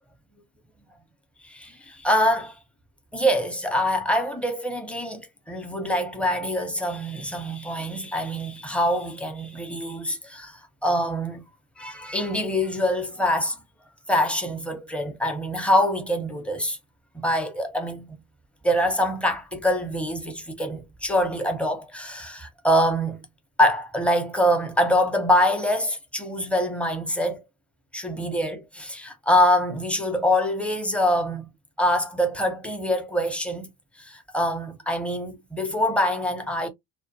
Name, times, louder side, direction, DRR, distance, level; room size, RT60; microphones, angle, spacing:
voice 1, 1.4-2.6 3.1-11.4 11.8-13.6 14.1-16.8 17.1-18.1 18.6-23.3 23.6-27.4 27.9-31.5 31.8-33.7 34.0-36.7, equal, 5° left, 0.8 m, -24 dB
2.4 x 2.3 x 2.6 m
supercardioid pair, 75°, 40 cm